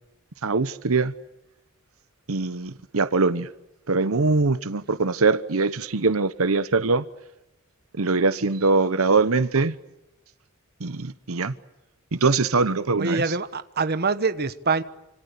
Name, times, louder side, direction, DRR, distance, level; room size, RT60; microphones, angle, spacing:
voice 1, 0.4-1.1 2.3-3.5 3.9-7.0 8.0-9.7 10.8-11.5 12.1-13.4, right 3 dB, 85° right, 1.0 m, -22 dB
voice 2, 13.0-14.8, right 4 dB, 50° right, 1.2 m, -24 dB
28.5 x 26.5 x 6.9 m
head